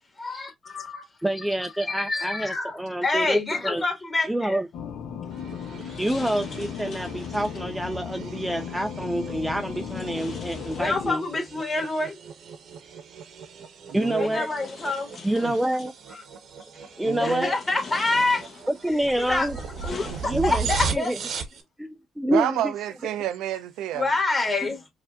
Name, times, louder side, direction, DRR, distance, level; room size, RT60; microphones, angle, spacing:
voice 1, 0.2-1.1 1.6-4.6 10.7-12.2 14.2-15.1 16.1-16.2 17.2-18.4 18.9-21.1 23.9-24.9, left 3 dB, 25° left, 1.7 m, -27 dB
voice 2, 1.2-3.8 4.3-4.7 6.0-11.3 13.9-14.5 15.2-15.9 17.0-17.5 18.8-19.6 20.2-20.7 20.9-21.2 21.8-22.7, right 1 dB, 5° right, 0.3 m, -27 dB
sound 1, 4.7-11.1, left 7 dB, 80° left, 0.7 m, -36 dB
sound 2, 5.2-7.8 9.8-11.4 12.8-12.9 13.9-16.0 16.6-17.0 17.4-18.9 19.4-20.8, left 5 dB, 50° left, 1.0 m, -45 dB
sound 3, 5.3-21.6, right 6 dB, 65° right, 0.8 m, -38 dB
voice 3, 13.9-14.4 15.4-15.6 17.0-17.5 20.1-20.5 22.3-24.1, right 11 dB, 90° right, 0.4 m, -29 dB
4.8 x 2.4 x 2.4 m
cardioid pair, 90°, 0 cm